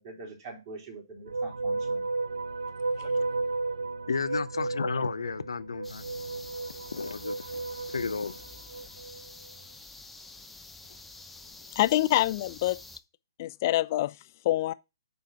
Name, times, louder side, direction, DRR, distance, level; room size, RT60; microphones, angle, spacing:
voice 1, 0.0-2.1, right 3 dB, 40° right, 3.5 m, -44 dB
sound 1, 1.3-9.3, right 3 dB, 80° right, 0.4 m, -33 dB
voice 2, 4.1-6.0 6.9-7.6 7.9-8.4, left 5 dB, 75° left, 0.7 m, -32 dB
sound 2, 5.8-13.0, left 2 dB, 5° left, 0.8 m, -48 dB
voice 3, 11.8-12.8 13.4-14.1 14.4-14.7, left 15 dB, 35° left, 0.6 m, -25 dB
9.3 x 3.6 x 5.9 m
hypercardioid pair, 140°, 3 cm